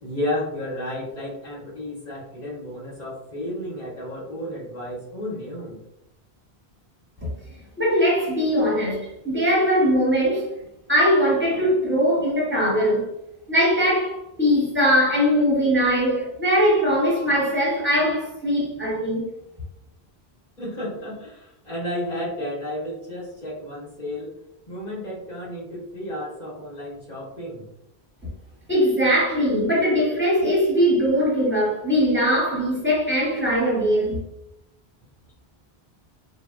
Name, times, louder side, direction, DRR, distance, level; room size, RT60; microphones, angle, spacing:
voice 1, 0.0-5.8 20.6-24.3 24.7-27.7, left 1 dB, 45° left, 1.1 m, -32 dB
voice 2, 7.8-10.5 10.9-13.1 13.5-19.3 28.7-34.2, equal, 10° right, 1.0 m, -21 dB
3.4 x 2.0 x 2.4 m
omnidirectional pair, 1.1 m